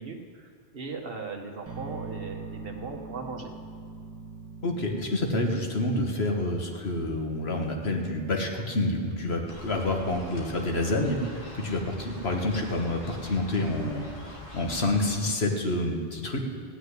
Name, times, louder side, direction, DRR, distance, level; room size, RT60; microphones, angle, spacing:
voice 1, 0.0-3.5, right 4 dB, 60° right, 2 dB, 1.6 m, -38 dB
sound 1, 1.7-7.7, right 4 dB, 15° right, 1.4 m, -43 dB
voice 2, 4.6-16.4, left 2 dB, 75° left, 2 dB, 1.8 m, -28 dB
sound 2, 9.5-15.2, left 2 dB, 55° left, 2.3 m, -45 dB
16.0 x 6.5 x 9.7 m, 2.1 s
omnidirectional pair, 1.1 m